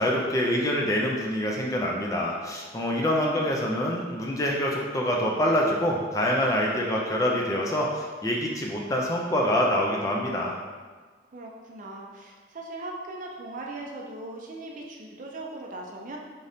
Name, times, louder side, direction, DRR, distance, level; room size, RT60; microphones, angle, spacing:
voice 1, 0.0-10.6, equal, 20° left, -2 dB, 0.4 m, -26 dB
voice 2, 2.9-3.6 11.3-16.2, right 2 dB, 45° right, -1 dB, 0.5 m, -39 dB
3.7 x 3.4 x 2.7 m, 1.4 s
head